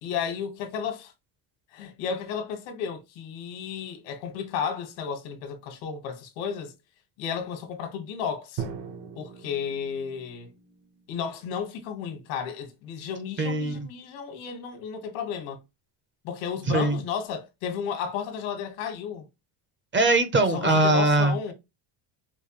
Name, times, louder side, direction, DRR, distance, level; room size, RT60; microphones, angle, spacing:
voice 1, 0.0-1.1 1.7-6.7 7.2-8.6 9.2-10.5 11.1-15.6 16.2-19.2 20.5-21.5, left 7 dB, 90° left, 1.4 m, -33 dB
Drum, 8.6-12.4, right 7 dB, 60° right, 1.0 m, -41 dB
voice 2, 13.4-13.9 16.7-17.0 19.9-21.4, right 2 dB, 25° right, 0.6 m, -21 dB
4.7 x 2.2 x 2.9 m
cardioid pair, 120°, 50 cm